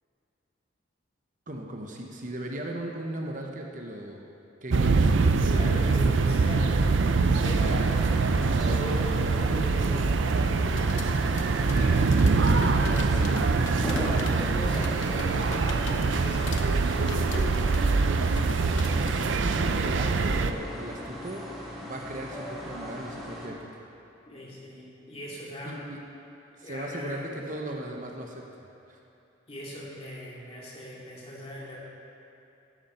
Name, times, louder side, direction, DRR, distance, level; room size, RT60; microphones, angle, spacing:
voice 1, 1.5-4.2 4.6-5.7 12.9-13.3 19.0-21.4 21.8-23.8 25.6-26.0 26.6-28.4 28.9-29.0, right 1 dB, 40° right, 1 dB, 1.0 m, -37 dB
sound 1, 4.7-20.5, right 4 dB, 75° right, 0.5 m, -24 dB
voice 2, 5.5-6.8 7.2-12.0 12.6-17.8 24.3-25.8 26.6-27.3 29.5-31.8, equal, 30° left, -5 dB, 2.4 m, -40 dB
sound 2, 7.4-23.5, equal, ahead, 1.8 m, -40 dB
sound 3, 10.7-19.1, left 4 dB, 75° left, 0.9 m, -43 dB
13.0 x 11.5 x 4.4 m, 2.8 s
head